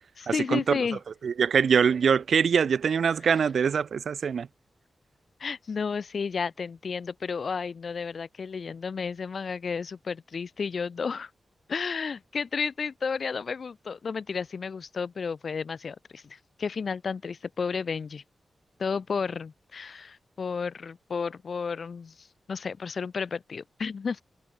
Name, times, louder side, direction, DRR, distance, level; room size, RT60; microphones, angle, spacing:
voice 1, 0.2-1.0 3.2-3.5 5.4-11.3 11.7-18.2 18.8-24.2, left 5 dB, 60° left, 5.6 m, -32 dB
voice 2, 1.2-4.5, right 6 dB, 70° right, 2.8 m, -23 dB
wide cardioid pair, 105°, 0 cm